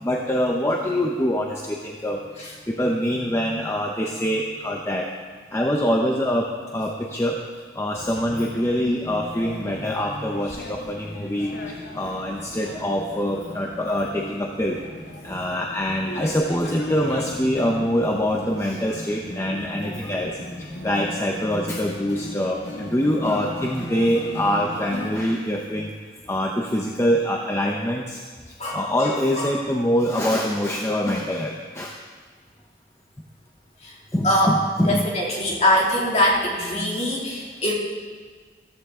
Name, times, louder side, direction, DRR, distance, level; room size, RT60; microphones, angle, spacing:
voice 1, 0.0-5.1 5.5-7.4 7.8-14.8 15.2-20.4 20.8-25.9 26.3-28.2 28.7-31.9 34.1-35.1, equal, 15° left, 0 dB, 0.7 m, -24 dB
sound 1, 7.9-25.1, left 1 dB, 80° left, 2.0 m, -36 dB
voice 2, 28.6-29.5 33.8-33.9 34.2-34.6 34.8-37.7, left 1 dB, 35° left, -3 dB, 2.6 m, -23 dB
14.5 x 13.5 x 3.7 m, 1.5 s
head